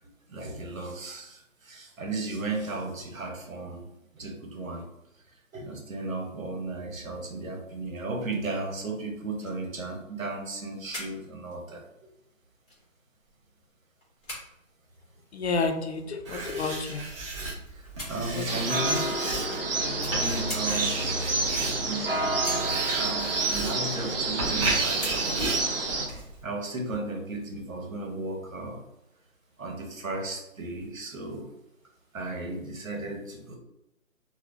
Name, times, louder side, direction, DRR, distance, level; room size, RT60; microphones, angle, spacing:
voice 1, 0.0-4.9 5.3-11.8 17.7-19.2 20.1-21.1 21.8-25.7 26.4-28.8 29.6-31.5 32.1-33.6, right 2 dB, 80° right, 1 dB, 1.2 m, -35 dB
sound 1, 9.3-9.7 10.0-11.2 11.5-11.6 12.2-12.3 12.7-13.7 14.0-15.1 15.9-16.0 16.5-17.2 17.8-18.5 19.5-19.6 19.9-20.7 21.5-21.7 22.4-22.6 24.5-25.1 25.4-25.5, equal, 5° left, 0.6 m, -41 dB
voice 2, 15.3-17.1 18.3-18.4 19.8-20.2, left 4 dB, 55° left, 5 dB, 0.6 m, -31 dB
Writing, 16.2-26.4, right 2 dB, 25° right, 1.1 m, -34 dB
sound 2, 18.5-26.1, right 3 dB, 45° right, 0.6 m, -28 dB
4.2 x 2.3 x 2.6 m, 0.87 s
figure-of-eight pair, 155°, 40 cm